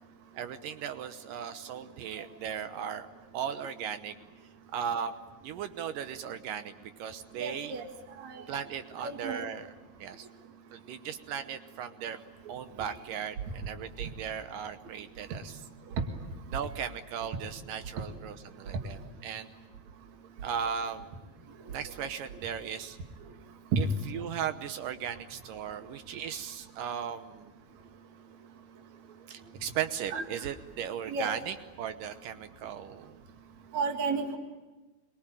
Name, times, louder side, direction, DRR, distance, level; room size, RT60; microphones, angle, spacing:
voice 1, 0.3-3.1 3.3-4.1 4.7-5.2 5.4-7.7 8.5-9.7 10.0-10.3 10.7-12.2 12.5-15.6 16.5-19.5 20.4-21.1 21.7-23.0 23.8-27.5 29.3-33.2, right 8 dB, 80° right, 9 dB, 2.6 m, -37 dB
voice 2, 7.4-7.8 8.2-8.4 9.0-9.4 23.7-23.8 30.1-30.2 31.1-31.3 33.7-34.4, right 4 dB, 60° right, 4 dB, 3.1 m, -31 dB
26.5 x 23.0 x 9.1 m, 1.2 s
omnidirectional pair, 3.9 m